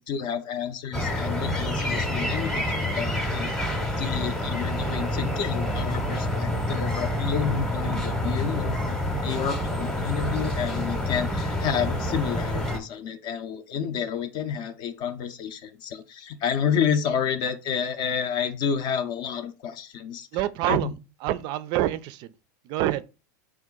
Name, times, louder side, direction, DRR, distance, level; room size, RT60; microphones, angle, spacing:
voice 1, 0.0-2.6 2.9-9.0 9.2-20.3 20.7-20.9, left 7 dB, 50° left, 0.5 m, -30 dB
sound 1, 0.9-12.8, left 1 dB, 5° left, 0.7 m, -28 dB
voice 2, 20.3-20.9 21.2-22.3 22.7-23.0, right 13 dB, 50° right, 0.3 m, -26 dB
3.6 x 2.4 x 3.8 m
hypercardioid pair, 115°, 10 cm